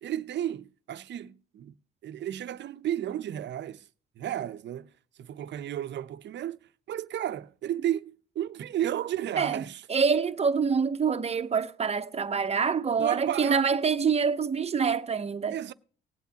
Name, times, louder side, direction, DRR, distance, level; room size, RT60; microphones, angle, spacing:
voice 1, 0.0-1.7 2.0-3.9 4.2-4.9 5.2-9.8 13.0-13.6 15.5-15.7, right 11 dB, 65° right, 0.7 m, -33 dB
voice 2, 9.9-15.6, right 6 dB, 30° right, 0.8 m, -26 dB
19.5 x 8.1 x 2.9 m
cardioid pair, 90°, 20 cm